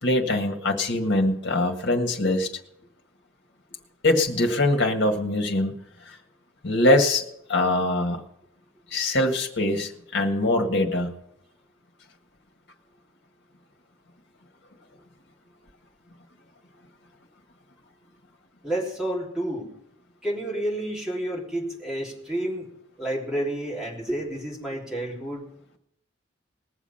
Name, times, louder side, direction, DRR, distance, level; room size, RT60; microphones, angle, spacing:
voice 1, 0.0-2.5 4.0-5.7 6.6-8.2 8.9-11.1, left 1 dB, 60° left, 3 dB, 1.8 m, -23 dB
voice 2, 18.6-19.7 20.2-22.7 23.0-25.5, right 1 dB, 5° right, -4 dB, 3.4 m, -30 dB
20.0 x 7.3 x 5.7 m, 0.76 s
head